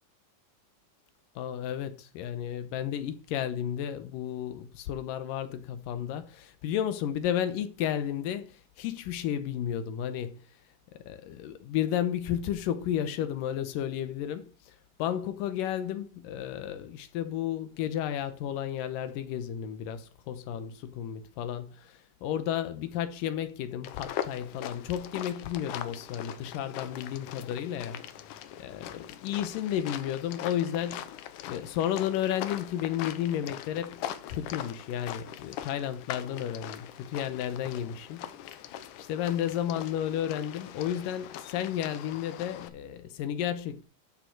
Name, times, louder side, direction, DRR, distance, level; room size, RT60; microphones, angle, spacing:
voice 1, 1.4-10.4 11.1-14.5 15.0-28.0 28.6-31.0 31.5-34.0 34.3-38.3 38.6-43.8, left 10 dB, 90° left, 2.6 m, -32 dB
sound 1, 23.8-42.7, left 11 dB, 75° left, 2.2 m, -41 dB
12.0 x 6.4 x 4.7 m
omnidirectional pair, 3.8 m